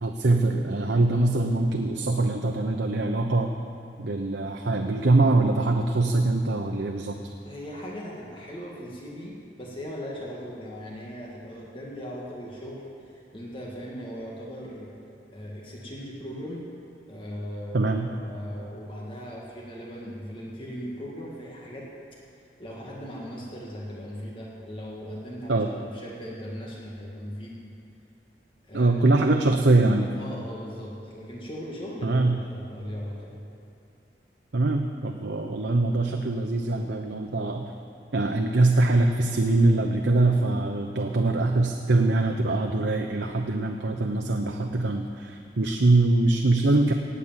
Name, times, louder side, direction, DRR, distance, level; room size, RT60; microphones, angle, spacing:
voice 1, 0.0-3.5 4.0-7.2 17.7-18.1 25.5-25.7 28.7-30.1 32.0-32.4 34.5-37.7 38.1-46.9, right 2 dB, 85° right, 3 dB, 0.8 m, -23 dB
voice 2, 7.5-14.9 15.3-16.6 17.1-17.9 18.2-21.9 22.3-27.7 28.6-29.4 30.2-33.4, equal, 30° left, -3 dB, 1.9 m, -38 dB
18.5 x 8.4 x 7.5 m, 2.6 s
head